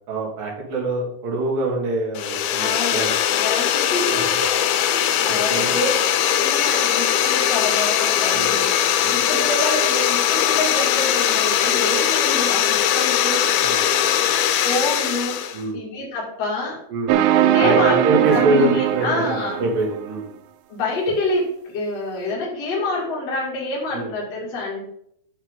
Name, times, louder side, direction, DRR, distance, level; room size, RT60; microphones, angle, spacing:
voice 1, 0.1-3.1 4.1-4.4 5.3-5.8 8.3-8.6 9.0-9.2 13.6-13.9 15.5-15.8 16.9-17.2 17.6-20.3 23.9-24.1, right 2 dB, 65° right, -1 dB, 3.9 m, -24 dB
sound 1, 2.1-15.6, left 10 dB, 80° left, 2.5 m, -20 dB
voice 2, 2.6-3.1 3.4-5.9 6.2-8.7 9.1-13.5 14.6-15.4 15.7-16.8 17.5-19.6 20.7-24.8, left 2 dB, 45° left, -5 dB, 3.2 m, -27 dB
sound 2, 17.1-20.1, right 11 dB, 90° right, 2.6 m, -20 dB
9.7 x 6.5 x 3.8 m, 0.69 s
omnidirectional pair, 4.3 m